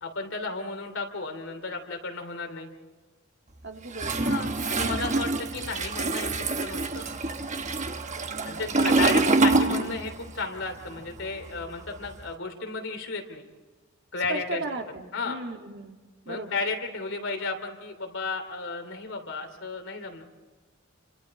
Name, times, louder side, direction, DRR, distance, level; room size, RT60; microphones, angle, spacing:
voice 1, 0.0-2.7 4.2-6.3 6.6-7.0 8.4-13.5 14.1-14.6 15.1-15.4 16.3-20.2, left 3 dB, 65° left, 4 dB, 3.1 m, -33 dB
voice 2, 3.6-4.2 8.6-9.2 14.2-16.0 16.3-16.6, right 2 dB, 55° right, 3 dB, 2.0 m, -37 dB
Toilet flush, 3.9-10.4 10.6-12.2, right 3 dB, 35° right, 1.1 m, -26 dB
29.5 x 26.0 x 4.3 m, 1.3 s
head